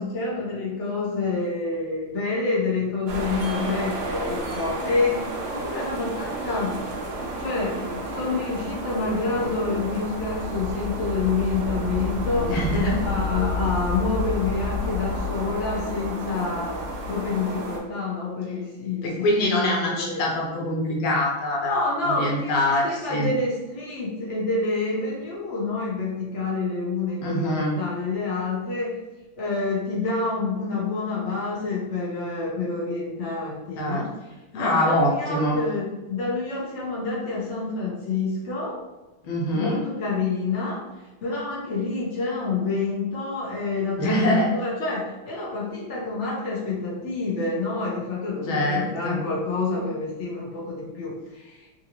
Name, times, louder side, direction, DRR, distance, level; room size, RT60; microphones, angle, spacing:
voice 1, 0.0-6.9 7.4-12.5 13.0-20.2 21.6-29.0 29.4-34.1 34.5-38.8 39.5-40.9 41.2-51.7, left 3 dB, 60° left, -5 dB, 0.7 m, -28 dB
sound 1, 3.1-17.8, equal, 65° right, 1.1 m, -30 dB
voice 2, 12.5-13.1 19.0-23.3 27.2-27.8 33.8-34.0 34.5-35.6 39.2-39.8 44.0-44.5 48.5-49.2, left 1 dB, 75° left, -2 dB, 1.6 m, -24 dB
3.7 x 2.6 x 2.9 m, 1.1 s
omnidirectional pair, 2.3 m